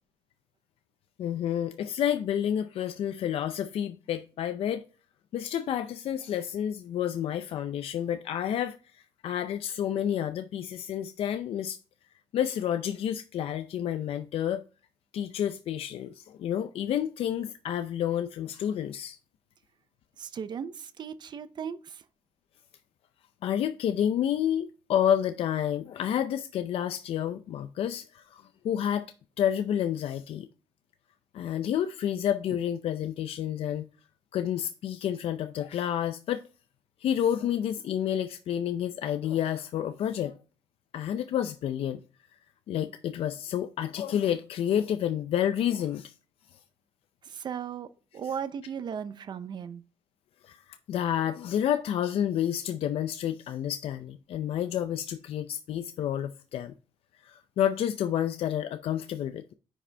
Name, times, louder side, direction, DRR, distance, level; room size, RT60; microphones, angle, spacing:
voice 1, 1.2-4.8 5.3-11.8 12.3-14.6 15.1-19.2 23.4-29.0 29.4-30.5 31.3-33.8 34.3-36.4 37.0-40.4 40.9-42.0 42.7-46.1 46.5-46.6 50.4-56.7 57.2-59.5, left 10 dB, 70° left, 0.5 m, -29 dB
voice 2, 20.2-22.0 47.2-49.8, right 7 dB, 50° right, 0.6 m, -37 dB
9.7 x 5.0 x 3.3 m
cardioid pair, 150°, 10 cm